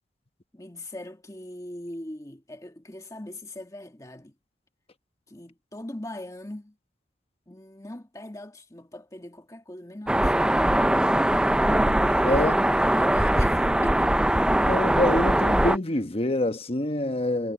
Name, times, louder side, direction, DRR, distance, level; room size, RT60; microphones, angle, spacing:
voice 1, 0.5-4.3 5.3-6.8 7.5-10.7 12.1-12.5 12.8-14.2, left 1 dB, 20° left, 1.7 m, -40 dB
sound 1, 10.1-15.8, right 1 dB, 5° right, 0.3 m, -21 dB
voice 2, 12.2-12.6 14.6-17.5, left 1 dB, 35° left, 1.1 m, -26 dB
head